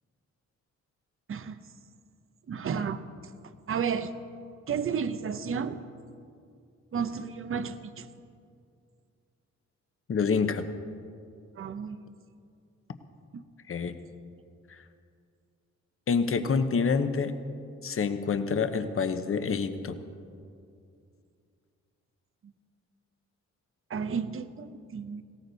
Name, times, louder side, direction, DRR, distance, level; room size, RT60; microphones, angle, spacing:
voice 1, 2.5-3.0 3.4-4.1 4.7-5.8 6.9-8.1 11.6-12.2 13.3-13.4 22.4-22.5 23.9-25.2, right 6 dB, 45° right, 11 dB, 0.8 m, -32 dB
voice 2, 10.1-10.6 13.7-14.0 16.1-17.3 17.8-20.0, left 5 dB, 45° left, 9 dB, 1.0 m, -27 dB
19.0 x 17.0 x 4.1 m, 2.4 s
cardioid pair, 95°, 30 cm